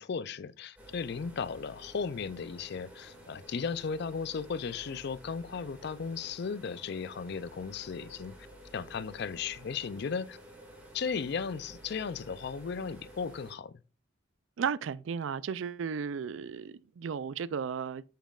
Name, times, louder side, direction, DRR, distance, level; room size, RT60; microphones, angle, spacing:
voice 1, 0.0-8.4 8.7-10.4 10.9-13.8, left 5 dB, 55° left, 0.4 m, -36 dB
sound 1, 0.8-13.5, equal, 10° right, 2.0 m, -52 dB
voice 2, 14.6-18.0, right 6 dB, 70° right, 0.4 m, -34 dB
9.0 x 7.2 x 2.4 m
head